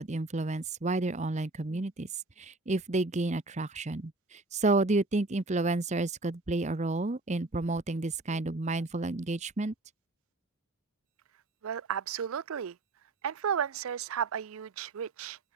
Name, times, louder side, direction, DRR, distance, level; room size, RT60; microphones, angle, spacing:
voice 1, 0.0-2.1 2.4-9.7, right 2 dB, 30° right, 0.8 m, -30 dB
voice 2, 11.6-12.7 13.2-15.4, right 8 dB, 70° right, 0.4 m, -33 dB
open air
head